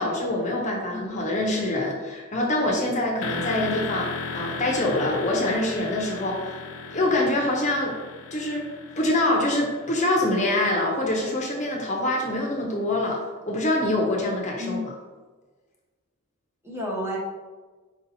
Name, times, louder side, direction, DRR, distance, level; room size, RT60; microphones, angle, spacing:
voice 1, 0.0-4.1 4.3-7.9 8.3-8.7 9.0-14.9, left 1 dB, 35° left, -1 dB, 0.7 m, -25 dB
sound 1, 3.2-11.0, left 4 dB, 65° left, 0.4 m, -36 dB
voice 2, 16.6-17.2, left 1 dB, 10° right, -4 dB, 0.9 m, -31 dB
4.8 x 2.8 x 4.0 m, 1.3 s
head